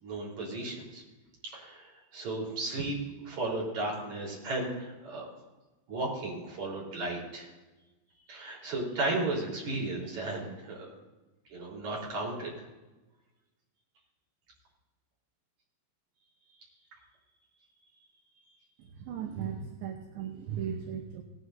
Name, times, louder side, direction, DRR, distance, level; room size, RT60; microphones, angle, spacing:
voice 1, 0.0-1.0 1.4-5.3 5.9-7.5 8.3-10.9 11.5-12.5, right 2 dB, 40° right, -4 dB, 5.0 m, -34 dB
voice 2, 18.8-21.2, right 8 dB, 80° right, 1 dB, 3.0 m, -37 dB
18.0 x 12.5 x 2.7 m, 1.1 s
omnidirectional pair, 5.3 m